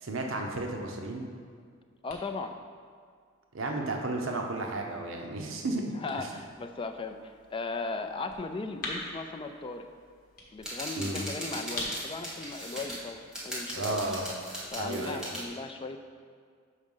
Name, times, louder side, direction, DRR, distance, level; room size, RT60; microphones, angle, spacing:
voice 1, 0.0-1.3 3.5-5.8 6.1-6.3 11.0-11.3 13.7-14.3 14.8-15.3, right 2 dB, 75° right, 2 dB, 0.7 m, -33 dB
sound 1, 1.2-14.7, left 2 dB, 45° left, 1.4 m, -47 dB
voice 2, 2.0-2.6 5.9-9.9 10.5-14.0 14.7-16.1, left 3 dB, 25° left, 6 dB, 0.4 m, -37 dB
sound 2, 10.6-13.0 13.3-15.4, equal, 5° right, 1.4 m, -39 dB
6.4 x 4.9 x 5.4 m, 2.1 s
head